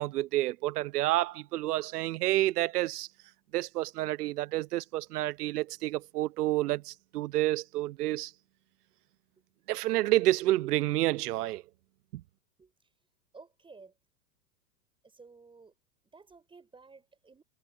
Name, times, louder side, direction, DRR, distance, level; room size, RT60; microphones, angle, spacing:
voice 1, 0.0-3.1 3.5-8.3 9.7-11.6 12.1-12.2, right 16 dB, 70° right, 0.8 m, -29 dB
voice 2, 13.3-13.9 15.0-15.7 16.1-17.4, right 4 dB, 10° right, 5.1 m, -54 dB
hypercardioid pair, 135°, 48 cm